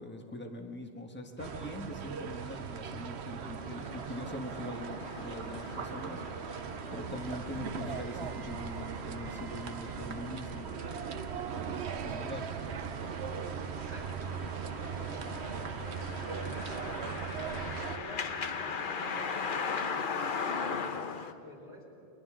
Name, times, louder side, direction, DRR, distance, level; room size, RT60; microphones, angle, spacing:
voice 1, 0.0-6.6 6.9-11.0 12.0-12.4, left 1 dB, 10° left, 3 dB, 1.4 m, -42 dB
sound 1, 1.4-18.0, right 6 dB, 90° right, 1.1 m, -39 dB
sound 2, 3.6-21.3, left 5 dB, 55° left, 1.0 m, -40 dB
voice 2, 13.7-16.1 16.6-22.0, equal, 30° left, -4 dB, 5.0 m, -50 dB
30.0 x 24.0 x 3.8 m, 2.6 s
omnidirectional pair, 1.1 m